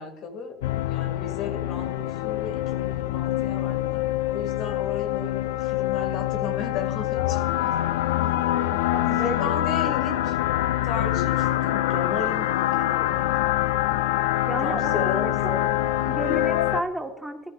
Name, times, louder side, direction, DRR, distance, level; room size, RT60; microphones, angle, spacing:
voice 1, 0.0-7.7 9.2-10.4 10.8-13.4 14.6-15.7, left 5 dB, 60° left, 6 dB, 2.3 m, -35 dB
sound 1, 0.6-16.8, left 14 dB, 85° left, 0.4 m, -25 dB
voice 2, 8.5-9.5 14.5-15.6 16.0-17.4, right 1 dB, 10° right, 4 dB, 1.4 m, -33 dB
14.5 x 13.5 x 2.5 m, 0.86 s
supercardioid pair, 85°, 0 cm